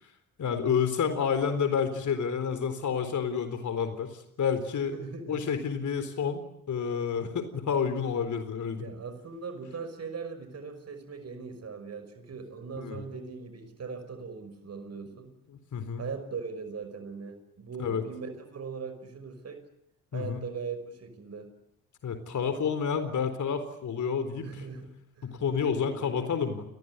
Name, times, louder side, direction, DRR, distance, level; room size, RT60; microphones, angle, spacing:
voice 1, 0.4-4.9 5.3-8.9 12.8-13.0 15.5-16.0 17.8-18.0 20.1-20.4 22.0-24.6 25.2-26.6, left 6 dB, 45° left, 10 dB, 4.1 m, -29 dB
voice 2, 4.9-5.4 8.7-15.3 16.0-19.6 20.1-21.5 24.4-26.3, right 5 dB, 35° right, 9 dB, 5.9 m, -40 dB
29.5 x 22.0 x 8.2 m, 0.74 s
figure-of-eight pair, 50°, 42 cm